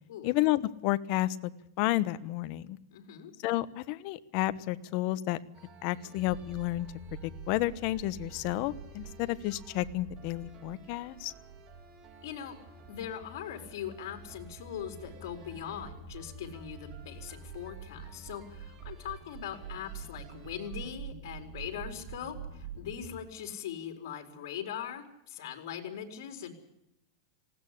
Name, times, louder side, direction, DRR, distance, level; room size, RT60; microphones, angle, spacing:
voice 1, 0.2-1.4 1.8-2.8 3.4-5.4 5.8-6.9 7.5-11.3, left 16 dB, 45° left, 15 dB, 1.1 m, -31 dB
voice 2, 2.9-3.3 12.2-12.6 12.9-26.5, left 9 dB, 65° left, 4 dB, 4.5 m, -41 dB
sound 1, 5.5-20.9, right 4 dB, 30° right, 3.3 m, -55 dB
sound 2, 6.1-23.2, right 5 dB, 45° right, 2.6 m, -47 dB
19.5 x 17.5 x 8.6 m, 0.85 s
supercardioid pair, 150°, 2 cm